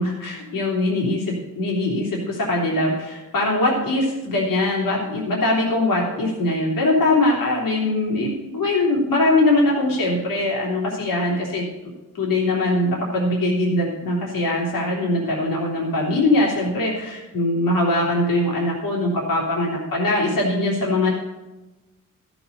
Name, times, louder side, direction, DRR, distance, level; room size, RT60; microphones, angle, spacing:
voice 1, 0.0-11.6 12.1-21.1, left 2 dB, 85° left, -3 dB, 3.1 m, -22 dB
13.5 x 7.0 x 6.6 m, 1.1 s
cardioid pair, 85°, 32 cm